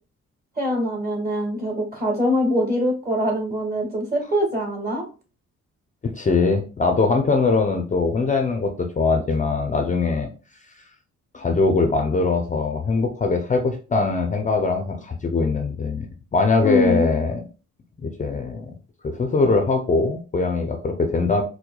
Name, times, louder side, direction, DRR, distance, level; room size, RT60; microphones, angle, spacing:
voice 1, 0.6-5.0 16.6-17.1, left 1 dB, 30° right, 0 dB, 1.5 m, -23 dB
voice 2, 6.0-10.3 11.3-16.1 16.3-17.4 18.0-18.7 19.0-21.4, left 3 dB, 25° left, 4 dB, 0.5 m, -21 dB
4.4 x 2.2 x 2.2 m, 0.35 s
cardioid pair, 90°, 30 cm